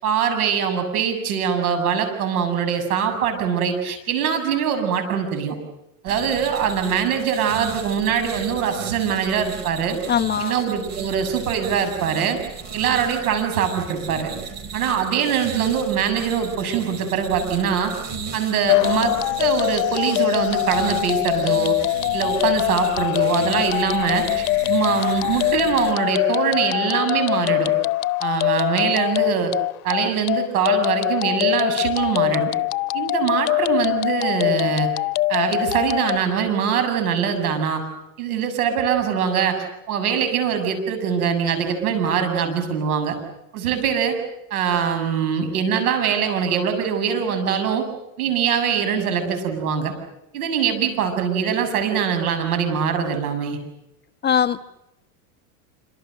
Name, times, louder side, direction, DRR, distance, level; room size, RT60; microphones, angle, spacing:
voice 1, 0.0-5.6 6.0-10.0 10.4-12.4 12.7-14.3 14.7-17.9 18.3-21.8 22.1-27.7 28.2-29.5 29.8-32.5 32.9-34.9 35.3-37.8 38.2-43.2 43.5-44.2 44.5-47.8 48.2-49.9 50.3-53.6, right 7 dB, 80° right, 7 dB, 7.5 m, -23 dB
sound 1, 6.1-25.9, right 5 dB, 40° right, 5.0 m, -36 dB
voice 2, 10.1-10.5 54.2-54.6, left 8 dB, 25° left, 9 dB, 1.1 m, -20 dB
sound 2, 18.7-36.2, left 18 dB, 70° left, 1.1 m, -23 dB
27.5 x 26.5 x 6.7 m, 0.86 s
supercardioid pair, 120°, 44 cm